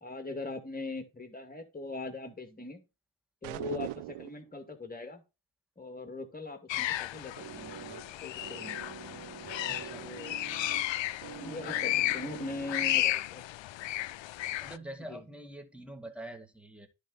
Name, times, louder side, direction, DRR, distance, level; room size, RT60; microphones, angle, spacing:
voice 1, 0.0-2.8 3.4-5.2 5.8-8.8 10.0-10.4 11.4-13.4 15.1-15.2, left 3 dB, 15° left, 6 dB, 2.4 m, -41 dB
sound 1, 3.4-4.5, right 16 dB, 80° right, 0.6 m, -39 dB
sound 2, 6.7-14.8, left 14 dB, 65° left, 0.6 m, -34 dB
sound 3, 7.4-13.3, right 8 dB, 40° right, 1.2 m, -46 dB
voice 2, 9.7-10.1 11.4-12.1 14.6-16.9, right 1 dB, ahead, 5 dB, 2.0 m, -46 dB
10.5 x 3.9 x 5.6 m, 0.27 s
cardioid pair, 70°, 50 cm